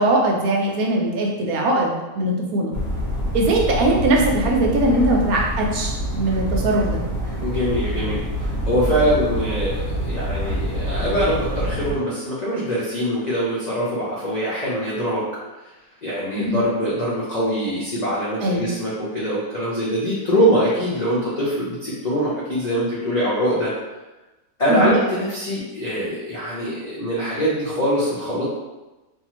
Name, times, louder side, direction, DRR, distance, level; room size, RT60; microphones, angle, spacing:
voice 1, 0.0-2.7 3.3-7.0 16.4-16.6 18.4-18.7 24.7-25.0, right 1 dB, 75° right, -1 dB, 1.0 m, -20 dB
sound 1, 2.7-11.9, equal, 50° left, 0.9 m, -26 dB
voice 2, 7.4-15.3 16.0-23.7 24.6-28.4, equal, 85° left, -8 dB, 0.3 m, -23 dB
2.6 x 2.4 x 2.9 m, 1.1 s
omnidirectional pair, 1.6 m